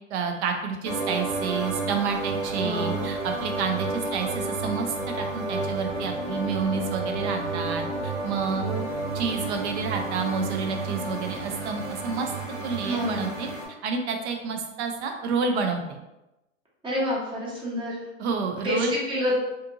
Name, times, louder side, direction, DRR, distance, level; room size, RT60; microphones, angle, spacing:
voice 1, 0.1-8.7 9.1-12.3 12.6-13.5 13.8-16.0 18.2-18.9, right 5 dB, 60° right, 4 dB, 0.6 m, -29 dB
sound 1, 0.8-13.6, right 3 dB, 85° right, 1.4 m, -31 dB
voice 2, 2.6-3.1 8.5-8.9 12.8-13.2 16.8-18.0 18.6-19.4, left 1 dB, 15° right, -6 dB, 0.8 m, -28 dB
2.6 x 2.5 x 2.7 m, 0.96 s
supercardioid pair, 135°, 38 cm